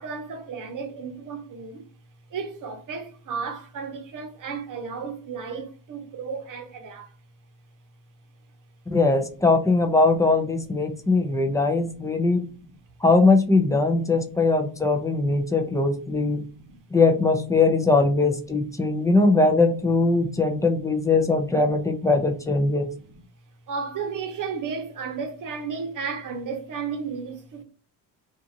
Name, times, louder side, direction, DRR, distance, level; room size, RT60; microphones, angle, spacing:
voice 1, 0.0-1.9 2.3-7.2 11.0-11.6 12.0-12.2 12.7-12.8 14.8-15.5 15.9-16.8 19.2-19.3 20.3-20.4 22.9-23.0 23.7-27.6, right 5 dB, 45° right, 0.9 m, -34 dB
voice 2, 8.9-12.5 13.0-16.4 16.9-22.9, left 3 dB, 10° left, 0.5 m, -21 dB
2.5 x 2.5 x 2.7 m
supercardioid pair, 85°, 43 cm